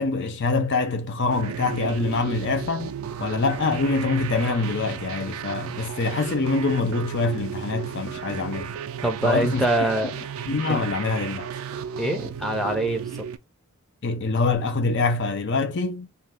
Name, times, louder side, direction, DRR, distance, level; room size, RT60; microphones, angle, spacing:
voice 1, 0.0-2.9 3.2-8.7 9.2-9.6 10.5-11.5 14.0-16.1, left 3 dB, 60° left, 0.6 m, -25 dB
sound 1, 1.3-13.4, right 8 dB, 85° right, 0.3 m, -34 dB
voice 2, 9.0-10.1 10.7-10.8 12.0-13.3, right 1 dB, ahead, 0.6 m, -24 dB
2.7 x 2.3 x 3.3 m
head